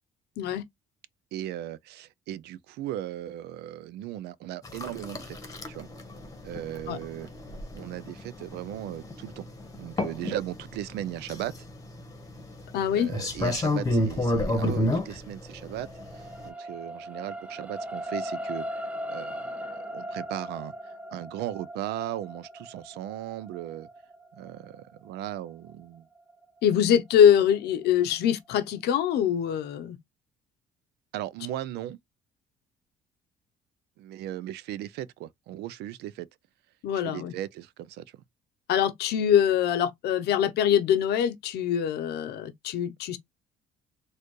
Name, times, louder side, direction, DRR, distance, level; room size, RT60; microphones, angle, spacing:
voice 1, 1.3-5.4 5.7-5.9 6.4-7.3 7.7-9.5 9.7-11.5 12.9-15.9 16.4-20.7 21.1-23.9 24.4-26.0 31.1-32.0 34.0-36.3 36.9-38.0, right 13 dB, 80° right, 0.4 m, -37 dB
sound 1, 4.6-16.5, left 1 dB, 20° left, 1.0 m, -31 dB
voice 2, 12.7-13.1 26.6-30.0 36.8-37.3 38.7-43.2, left 9 dB, 75° left, 0.7 m, -23 dB
sound 2, 15.0-27.5 28.0-28.1, equal, 10° right, 0.4 m, -39 dB
4.3 x 2.4 x 3.1 m
cardioid pair, 110°, 17 cm